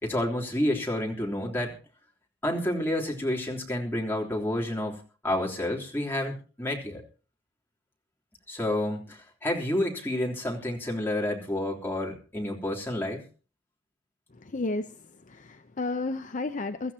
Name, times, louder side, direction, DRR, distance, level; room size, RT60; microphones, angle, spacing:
voice 1, 0.0-1.8 2.4-5.0 5.2-7.0 8.5-13.2, left 1 dB, 10° left, -2 dB, 3.4 m, -29 dB
voice 2, 14.3-16.9, left 2 dB, 40° left, 8 dB, 0.7 m, -33 dB
23.0 x 14.0 x 2.9 m, 0.36 s
head